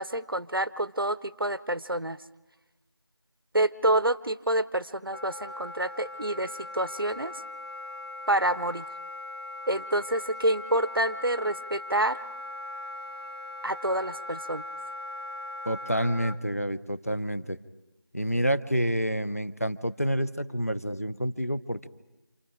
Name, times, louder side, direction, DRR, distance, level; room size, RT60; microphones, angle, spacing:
voice 1, 0.0-2.2 3.5-7.3 8.3-8.8 9.7-12.2 13.6-14.6, right 1 dB, 70° right, 16 dB, 0.9 m, -28 dB
Wind instrument woodwind instrument, 5.1-16.4, left 2 dB, 80° left, 2.6 m, -40 dB
voice 2, 15.7-17.6 18.1-21.9, equal, 40° left, 12 dB, 0.7 m, -28 dB
28.0 x 28.0 x 4.9 m, 1.0 s
figure-of-eight pair, 175°, 12 cm